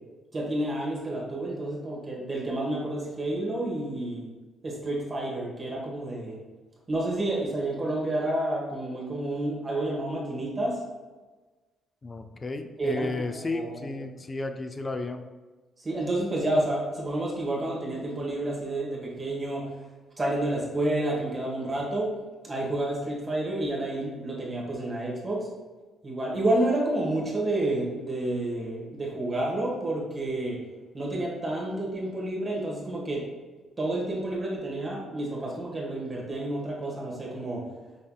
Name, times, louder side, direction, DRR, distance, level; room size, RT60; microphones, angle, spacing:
voice 1, 0.3-4.2 4.6-6.4 6.9-10.8 12.8-14.0 15.8-19.6 20.2-22.1 22.4-25.5 26.0-30.6 30.9-33.2 33.8-37.6, right 1 dB, 30° right, -3 dB, 1.3 m, -29 dB
voice 2, 12.0-15.3, left 3 dB, 30° left, 7 dB, 0.4 m, -33 dB
5.4 x 3.5 x 2.3 m, 1.3 s
cardioid pair, 90°, 0 cm